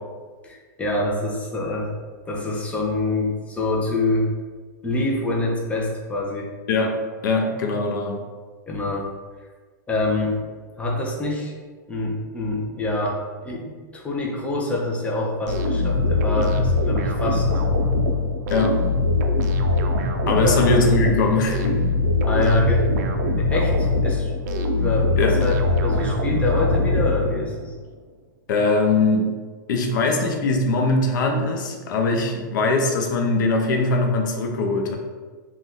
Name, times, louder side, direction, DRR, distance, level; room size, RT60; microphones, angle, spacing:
voice 1, 0.4-1.9 2.3-4.3 4.8-6.5 8.7-9.1 9.9-10.4 10.7-11.5 11.9-17.5 20.3-20.6 22.2-22.8 23.4-24.3 24.8-27.7, left 2 dB, 10° left, -2 dB, 0.6 m, -25 dB
voice 2, 7.2-8.2 18.5-18.8 20.3-21.9 22.3-22.5 25.2-25.4 28.5-29.3 29.7-35.0, left 3 dB, 70° left, 2 dB, 0.6 m, -21 dB
sound 1, 15.5-27.7, left 2 dB, 60° right, 0.4 m, -22 dB
2.6 x 2.3 x 3.5 m, 1.4 s
hypercardioid pair, 130°, 11 cm